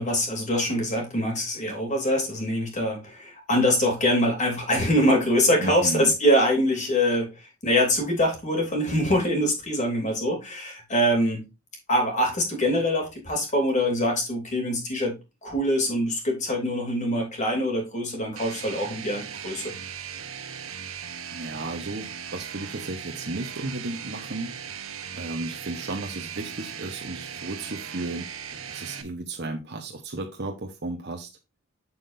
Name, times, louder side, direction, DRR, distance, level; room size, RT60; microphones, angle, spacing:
voice 1, 0.0-11.4 11.9-15.1 15.4-19.7, equal, 35° left, 1 dB, 3.0 m, -24 dB
voice 2, 5.6-6.1 21.3-24.5 25.1-28.3 28.7-31.3, right 2 dB, 55° right, 2 dB, 1.1 m, -34 dB
sound 1, 18.4-29.0, right 8 dB, 85° right, 1.1 m, -38 dB
7.6 x 7.4 x 2.7 m, 0.25 s
head